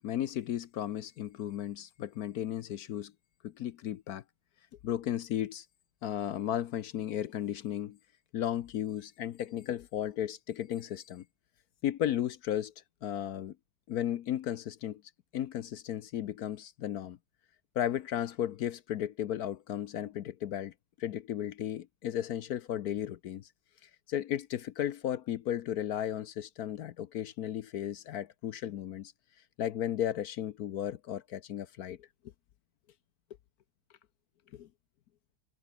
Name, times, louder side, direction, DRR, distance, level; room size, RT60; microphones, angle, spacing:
voice 1, 0.0-3.1 3.4-4.2 4.8-5.7 6.0-8.0 8.3-11.2 11.8-12.7 13.0-13.6 13.9-15.0 15.3-17.2 17.7-20.7 21.0-23.5 23.8-29.1 29.6-32.1 34.5-34.7, left 11 dB, 65° left, 1.0 m, -35 dB
omnidirectional pair, 2.1 m